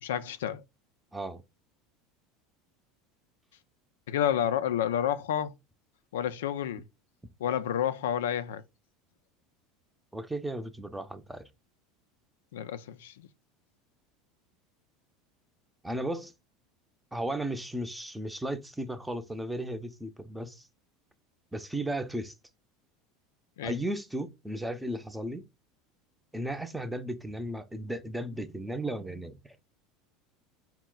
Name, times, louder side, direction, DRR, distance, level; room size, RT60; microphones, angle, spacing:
voice 1, 0.0-0.6 4.1-5.5 6.1-6.8 7.4-8.6 12.5-13.3 23.6-23.7, left 10 dB, 80° left, 0.4 m, -30 dB
voice 2, 10.1-11.5 15.8-16.3 17.1-20.7 21.5-22.3 23.6-25.5 26.3-29.6, right 1 dB, 5° right, 0.6 m, -35 dB
4.2 x 2.2 x 3.8 m
hypercardioid pair, 90°, 0 cm